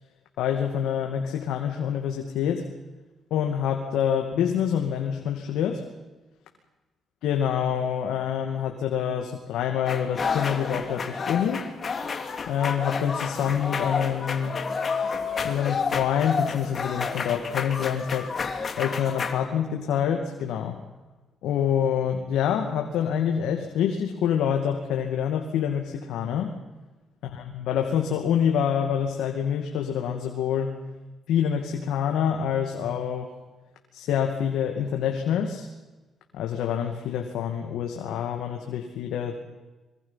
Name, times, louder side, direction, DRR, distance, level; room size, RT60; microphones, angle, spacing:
voice 1, 0.4-2.7 3.3-5.8 7.2-11.7 12.5-14.6 15.4-18.3 18.8-20.8 21.4-26.5 27.2-30.7 31.3-33.3 33.9-35.7 36.3-39.3, left 8 dB, 85° left, 3 dB, 2.3 m, -26 dB
sound 1, 9.8-19.3, left 5 dB, 40° left, 2.8 m, -30 dB
25.5 x 23.5 x 5.9 m, 1.1 s
cardioid pair, 90°, 0 cm